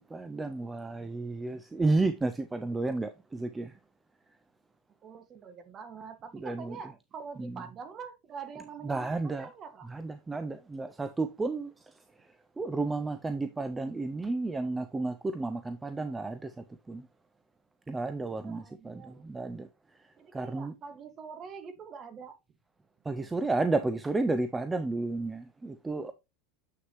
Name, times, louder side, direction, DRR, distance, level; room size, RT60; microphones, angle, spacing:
voice 1, 0.1-3.7 6.4-6.8 7.4-7.7 8.8-9.5 9.8-11.7 12.6-17.1 17.9-19.7 20.3-20.7 23.1-26.1, right 3 dB, 10° right, 0.6 m, -32 dB
voice 2, 5.0-9.9 18.2-19.3 20.2-22.4, right 6 dB, 35° right, 1.8 m, -45 dB
7.7 x 6.4 x 3.0 m
supercardioid pair, 125°, 0 cm